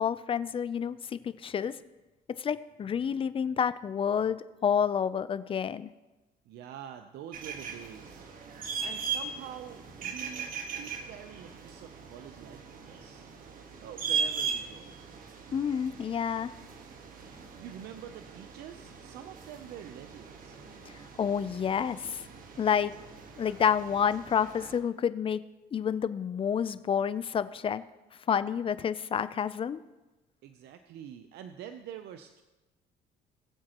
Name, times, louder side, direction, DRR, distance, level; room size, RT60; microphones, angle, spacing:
voice 1, 0.0-1.8 2.4-5.9 15.5-16.5 21.2-22.2 22.6-22.9 23.4-25.4 25.7-27.8 28.3-29.8, left 7 dB, 30° left, 14 dB, 0.5 m, -29 dB
voice 2, 6.5-8.2 8.8-13.3 13.8-15.0 17.6-20.6 30.4-32.4, right 9 dB, 75° right, 8 dB, 0.7 m, -46 dB
sound 1, 7.3-24.8, right 6 dB, 55° right, 1.5 m, -39 dB
20.5 x 7.6 x 3.0 m, 1.1 s
cardioid pair, 110°, 17 cm